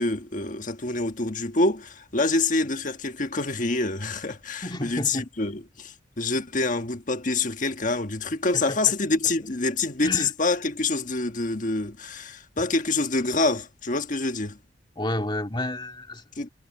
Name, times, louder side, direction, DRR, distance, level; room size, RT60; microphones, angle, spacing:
voice 1, 0.0-14.6 16.4-16.5, left 3 dB, 45° left, 1.4 m, -26 dB
voice 2, 4.6-5.3 8.5-8.8 10.0-10.3 12.6-12.7 15.0-16.2, left 1 dB, 25° left, 2.7 m, -31 dB
head